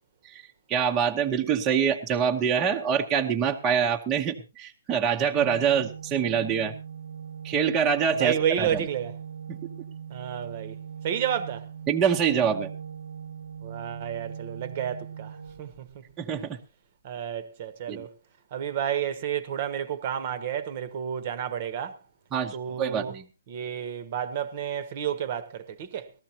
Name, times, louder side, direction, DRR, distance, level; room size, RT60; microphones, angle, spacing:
voice 1, 0.2-6.7 7.4-8.8 9.5-9.6 11.9-12.7 16.2-16.6 17.9-18.1 22.3-23.2, right 7 dB, 15° right, 0.9 m, -25 dB
Organ, 5.3-16.2, right 8 dB, 85° right, 1.1 m, -40 dB
voice 2, 8.2-9.1 10.1-10.8 11.0-11.7 13.6-15.9 17.0-18.1 18.5-22.0 22.5-23.1 23.5-26.1, right 9 dB, 35° right, 1.1 m, -31 dB
19.5 x 14.0 x 2.9 m
hypercardioid pair, 160°, 0 cm